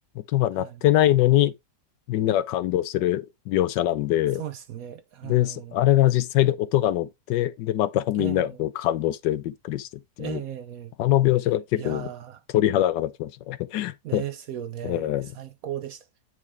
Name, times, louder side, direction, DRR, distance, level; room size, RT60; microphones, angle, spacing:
voice 1, 0.2-1.5 2.1-4.4 5.2-9.9 10.2-10.4 11.0-12.1 12.5-14.2 14.8-15.3, left 13 dB, 90° left, 1.3 m, -23 dB
voice 2, 4.4-5.8 8.2-8.6 10.2-10.9 11.8-12.4 14.0-16.0, right 11 dB, 65° right, 1.0 m, -36 dB
9.6 x 4.7 x 3.5 m
omnidirectional pair, 1.9 m